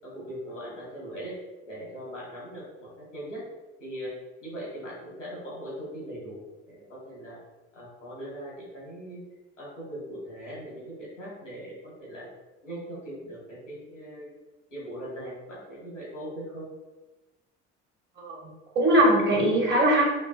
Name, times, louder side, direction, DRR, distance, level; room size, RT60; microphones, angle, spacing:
voice 1, 0.0-1.4 1.6-3.5 3.8-4.1 4.4-7.4 7.7-9.2 9.6-12.3 12.6-14.4 14.7-16.7, equal, 85° left, -5 dB, 1.5 m, -40 dB
voice 2, 18.2-20.0, right 1 dB, 30° right, -2 dB, 1.2 m, -21 dB
5.2 x 2.7 x 2.4 m, 1.1 s
figure-of-eight pair, 55°, 35 cm